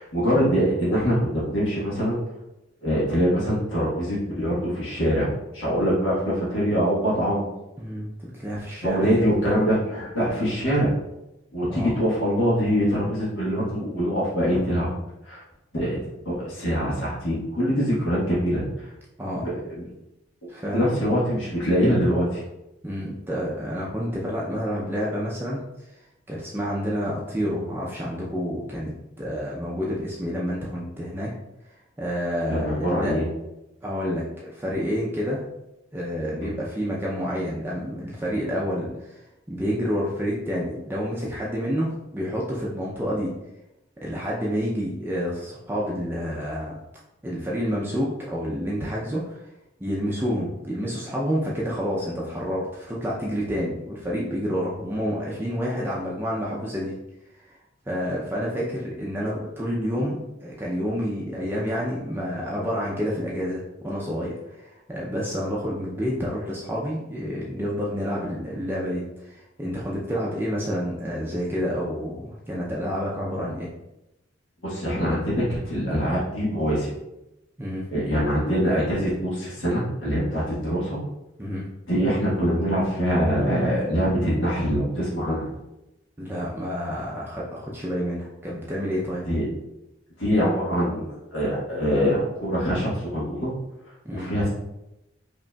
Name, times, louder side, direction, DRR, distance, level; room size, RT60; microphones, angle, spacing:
voice 1, 0.0-2.2 2.8-7.4 8.8-10.9 11.5-14.9 15.2-15.4 15.7-16.0 16.2-18.6 19.4-19.8 20.7-22.4 32.5-33.2 36.3-36.5 74.6-76.9 77.9-81.0 81.9-85.5 89.3-89.4 90.2-91.0 91.3-93.5 94.1-94.5, equal, 80° left, -7 dB, 1.3 m, -24 dB
voice 2, 7.8-9.3 10.4-10.5 11.7-11.9 19.2-19.5 20.5-20.9 22.8-25.9 26.3-31.3 32.0-33.1 33.8-35.4 35.9-39.2 39.5-43.3 44.0-46.8 47.2-49.4 49.8-57.0 57.4-57.6 57.9-73.7 77.6-77.9 81.4-81.7 86.2-89.2 94.0-94.3, equal, 10° right, -5 dB, 0.5 m, -29 dB
5.1 x 2.9 x 2.3 m, 0.92 s
head